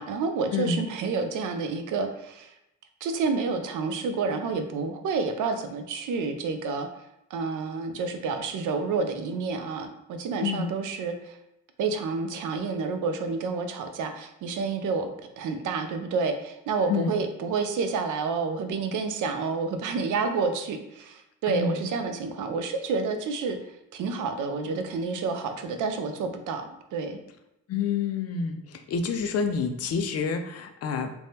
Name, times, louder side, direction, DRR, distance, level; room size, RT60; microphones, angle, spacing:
voice 1, 0.0-2.5 3.0-6.9 7.3-11.4 11.8-15.1 15.4-27.2, right 4 dB, 75° right, 7 dB, 0.5 m, -29 dB
voice 2, 0.5-0.8 10.4-10.7 16.9-17.2 21.5-21.9 27.7-31.1, left 5 dB, 50° left, 7 dB, 0.4 m, -28 dB
3.3 x 2.1 x 2.7 m, 0.87 s
cardioid pair, 95°, 32 cm